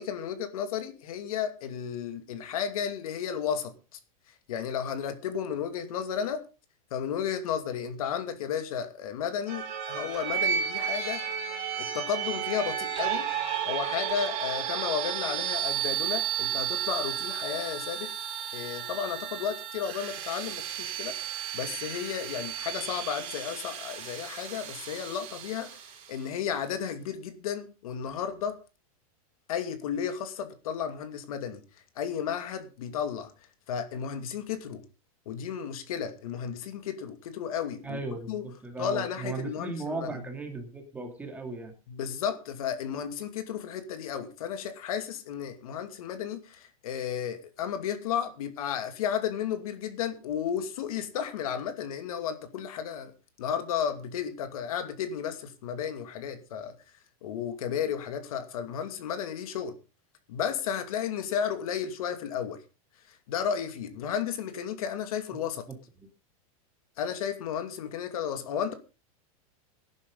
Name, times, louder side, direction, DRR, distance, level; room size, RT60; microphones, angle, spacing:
voice 1, 0.0-3.7 4.5-6.4 6.9-11.2 11.8-13.3 13.7-18.1 18.5-25.8 26.1-28.6 29.5-31.6 32.0-33.3 33.7-34.8 35.3-38.0 38.3-38.4 38.8-40.1 41.9-53.1 53.4-56.7 57.2-59.7 60.3-62.6 63.1-65.6 67.0-68.7, left 8 dB, 70° left, 2.6 m, -33 dB
sound 1, 9.5-26.2, right 9 dB, 35° right, 5.3 m, -33 dB
voice 2, 37.8-41.7 65.7-65.8, right 3 dB, 10° right, 2.8 m, -36 dB
18.0 x 11.0 x 3.9 m
supercardioid pair, 160°, 19 cm